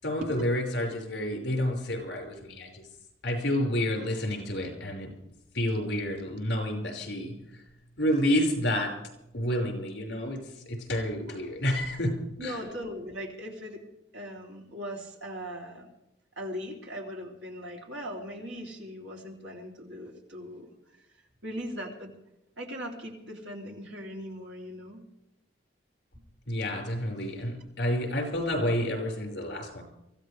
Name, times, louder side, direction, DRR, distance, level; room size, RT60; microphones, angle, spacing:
voice 1, 0.0-2.9 3.2-5.1 5.5-7.6 8.0-8.9 9.3-12.1 12.4-12.7 26.5-29.8, equal, 65° left, 1 dB, 5.4 m, -29 dB
voice 2, 12.4-13.8 14.1-15.9 16.4-20.7 21.4-22.1 22.6-25.0, equal, 75° right, 0 dB, 3.3 m, -39 dB
23.5 x 15.5 x 3.4 m, 0.87 s
head